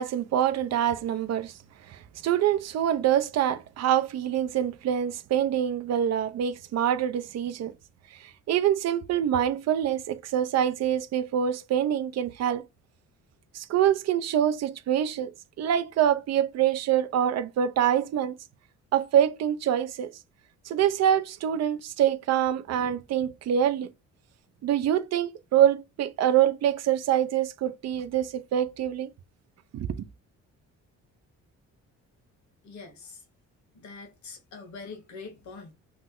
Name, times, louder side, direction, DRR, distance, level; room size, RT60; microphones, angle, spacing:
voice 1, 0.0-1.5 1.9-7.7 8.5-12.7 13.5-18.4 18.9-20.1 20.7-23.9 24.6-29.1 29.7-30.0, right 10 dB, 60° right, 0.5 m, -25 dB
voice 2, 32.6-33.2 33.7-35.7, left 4 dB, 65° left, 1.1 m, -43 dB
3.0 x 2.0 x 3.6 m
cardioid pair, 90°, 30 cm